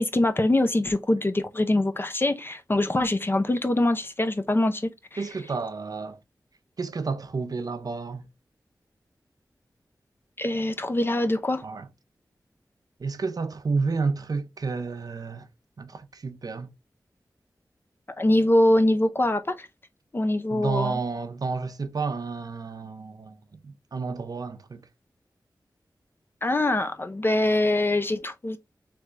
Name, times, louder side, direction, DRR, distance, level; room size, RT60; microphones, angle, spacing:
voice 1, 0.0-4.9 10.4-11.6 18.2-19.7 20.1-21.0 26.4-28.6, left 1 dB, 30° left, 0.6 m, -23 dB
voice 2, 5.2-6.2 6.8-8.2 11.6-11.9 13.0-15.5 15.8-16.7 20.5-24.8, right 4 dB, 60° right, 0.6 m, -31 dB
3.3 x 3.3 x 3.8 m
wide cardioid pair, 85°, 7 cm